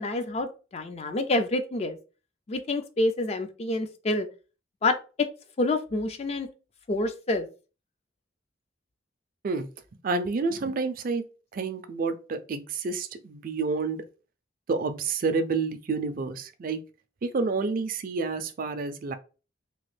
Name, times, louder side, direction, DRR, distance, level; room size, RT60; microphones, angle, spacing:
voice 1, 0.0-2.0 2.5-4.3 4.8-5.3 5.6-6.5 6.9-7.5, left 2 dB, 35° left, 0.4 m, -27 dB
voice 2, 10.0-11.2 11.5-14.0 14.7-16.8 17.2-19.1, right 4 dB, 45° right, 0.4 m, -29 dB
3.0 x 2.4 x 3.1 m
head